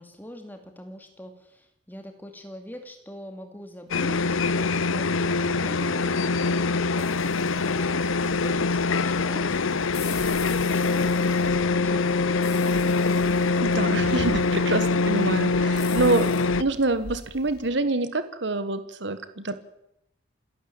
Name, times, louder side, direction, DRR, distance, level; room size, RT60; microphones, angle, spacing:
voice 1, 0.0-12.7, equal, 10° left, 5 dB, 2.7 m, -43 dB
sound 1, 3.9-16.6, left 4 dB, 80° left, 0.8 m, -24 dB
sound 2, 7.0-17.7, left 3 dB, 50° left, 7.2 m, -43 dB
voice 2, 13.6-16.3 16.6-19.5, right 2 dB, 60° right, 12 dB, 1.4 m, -26 dB
28.5 x 12.0 x 8.8 m, 0.81 s
head